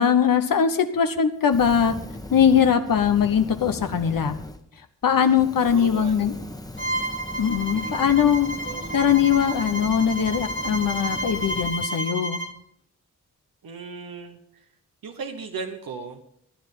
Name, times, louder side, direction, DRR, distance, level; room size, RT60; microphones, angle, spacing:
voice 1, 0.0-1.9 2.3-4.3 5.0-6.3 7.4-8.5 8.9-12.4, left 8 dB, 75° left, 7 dB, 1.0 m, -21 dB
Fire, 1.4-4.6 5.0-12.1, left 1 dB, 10° left, 1.3 m, -39 dB
voice 2, 5.7-6.6 7.7-8.1 8.6-9.1 13.6-14.7 15.0-16.2, right 5 dB, 90° right, 4 dB, 1.1 m, -37 dB
Bowed string instrument, 6.8-12.6, right 1 dB, 35° left, 1.8 m, -31 dB
14.5 x 9.9 x 5.5 m, 0.72 s
cardioid pair, 50°, 34 cm